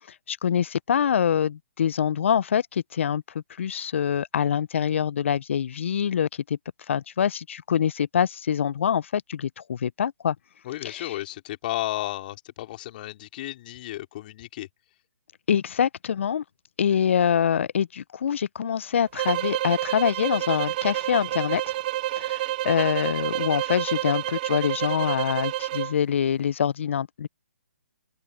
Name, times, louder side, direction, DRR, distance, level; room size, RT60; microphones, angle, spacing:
voice 1, 0.3-3.2 3.6-6.6 6.9-10.4 10.8-11.1 15.5-16.4 16.8-21.6 22.2-27.3, left 8 dB, 55° left, 0.8 m, -25 dB
voice 2, 10.6-14.7, left 15 dB, 40° left, 4.0 m, -33 dB
sound 1, 19.1-26.0, right 15 dB, 35° right, 0.8 m, -29 dB
open air
figure-of-eight pair, 140°, 8 cm